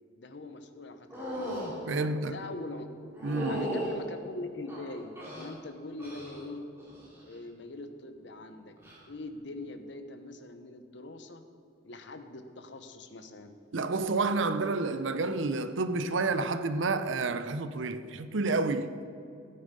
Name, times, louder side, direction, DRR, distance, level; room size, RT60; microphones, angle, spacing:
voice 1, 0.2-1.5 2.0-2.9 3.5-6.7 7.2-8.7 9.1-11.4 11.8-13.6, left 2 dB, 60° left, 0.9 m, -42 dB
sound 1, 1.1-1.7 3.2-3.9 4.7-5.5 6.0-6.4 6.8-7.2 8.8-9.0, equal, 10° right, 3.3 m, -36 dB
voice 2, 1.9-2.3 3.2-3.8 13.7-19.1, right 3 dB, 65° right, 0.6 m, -30 dB
15.5 x 8.8 x 5.3 m
head